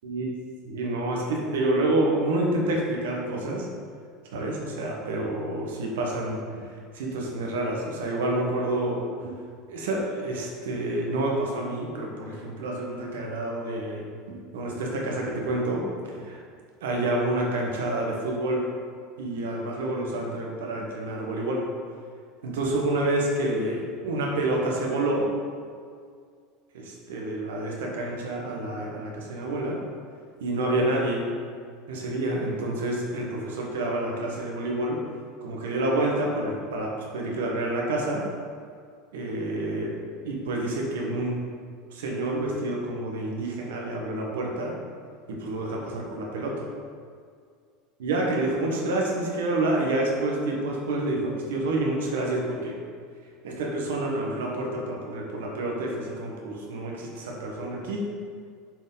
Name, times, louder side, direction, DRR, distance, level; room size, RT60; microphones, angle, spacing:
voice 1, 0.6-3.7 4.3-6.6 6.9-9.4 9.7-16.4 16.8-18.7 19.2-21.7 22.4-25.3 26.7-29.8 30.4-31.2 31.9-35.0 35.4-38.2 39.1-39.9 40.2-41.4 41.9-44.8 45.3-46.7 48.0-52.8 53.4-58.1, right 1 dB, 80° right, -1 dB, 1.3 m, -28 dB
7.4 x 4.3 x 3.9 m, 2.1 s
hypercardioid pair, 95°, 0 cm